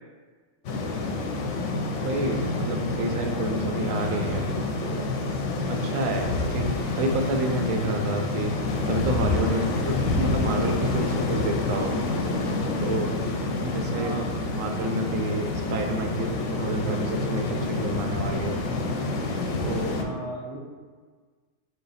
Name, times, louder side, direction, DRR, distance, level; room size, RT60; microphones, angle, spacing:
sound 1, 0.6-20.0, left 2 dB, 65° left, 0.8 m, -28 dB
voice 1, 2.0-4.5 4.8-5.0 5.7-6.7 7.0-8.5 8.9-12.0 12.8-13.1 13.6-18.6 19.6-20.1, right 2 dB, 75° right, 3 dB, 0.9 m, -29 dB
voice 2, 13.9-14.4 19.9-20.6, right 2 dB, 30° right, -4 dB, 0.6 m, -37 dB
5.4 x 2.2 x 4.0 m, 1.5 s
omnidirectional pair, 1.5 m